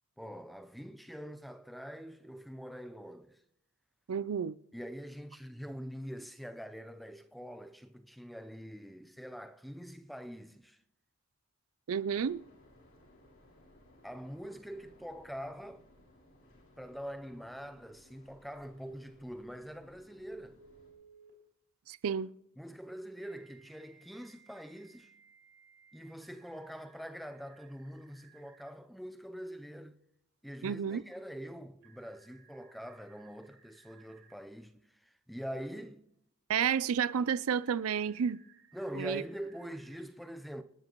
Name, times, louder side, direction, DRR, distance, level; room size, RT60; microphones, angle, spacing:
voice 1, 0.2-3.4 4.7-10.8 14.0-15.8 16.8-20.6 22.6-25.1 25.9-30.0 30.4-36.0 38.7-40.6, equal, ahead, 0.5 m, -44 dB
voice 2, 4.1-4.5 11.9-12.4 21.9-22.3 30.6-31.0 36.5-38.4 38.9-39.2, right 7 dB, 75° right, 0.4 m, -31 dB
sound 1, 12.1-20.9, left 1 dB, 65° left, 6.3 m, -62 dB
Telephone, 20.6-21.3 23.2-28.7 31.8-34.3 37.5-40.0, right 6 dB, 55° right, 3.2 m, -62 dB
27.5 x 10.5 x 3.0 m
head